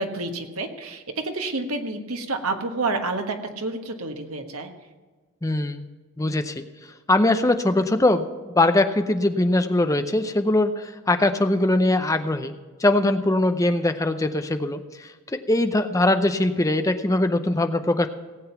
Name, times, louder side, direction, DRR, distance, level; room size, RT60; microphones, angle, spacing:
voice 1, 0.0-4.7, right 3 dB, 85° right, 5 dB, 1.4 m, -29 dB
voice 2, 5.4-5.9 6.2-6.6 7.1-8.3 8.6-12.5 12.8-18.1, left 2 dB, 15° left, 9 dB, 0.5 m, -21 dB
17.5 x 7.9 x 5.7 m, 1.3 s
head